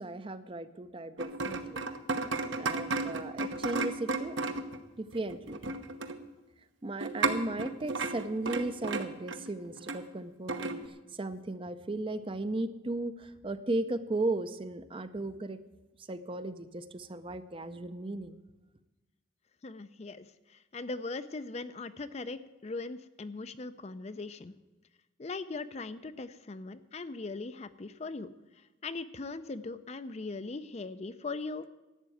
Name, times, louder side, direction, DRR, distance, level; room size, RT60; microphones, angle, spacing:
voice 1, 0.0-1.8 2.6-4.4 5.0-5.6 6.8-15.6 16.0-18.4, right 2 dB, 25° right, 12 dB, 0.5 m, -36 dB
sound 1, 1.2-4.8 5.1-6.2 7.0-10.0 10.5-10.8, right 3 dB, 70° right, 1.0 m, -33 dB
voice 2, 19.6-24.5 25.2-28.3 28.8-31.7, left 3 dB, 30° left, 13 dB, 0.5 m, -40 dB
12.0 x 8.2 x 9.1 m, 1.1 s
head